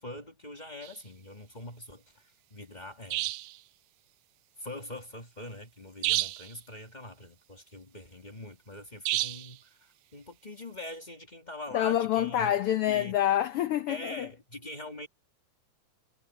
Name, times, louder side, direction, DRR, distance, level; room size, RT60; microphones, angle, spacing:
voice 1, 0.0-3.3 4.6-12.5 12.9-13.2 13.9-15.1, left 1 dB, 20° left, 1.4 m, -43 dB
sound 1, 0.8-1.0 3.1-3.6 6.0-6.5 9.0-9.6, right 17 dB, 75° right, 1.7 m, -30 dB
voice 2, 11.7-14.3, left 11 dB, 85° left, 1.2 m, -27 dB
omnidirectional pair, 3.5 m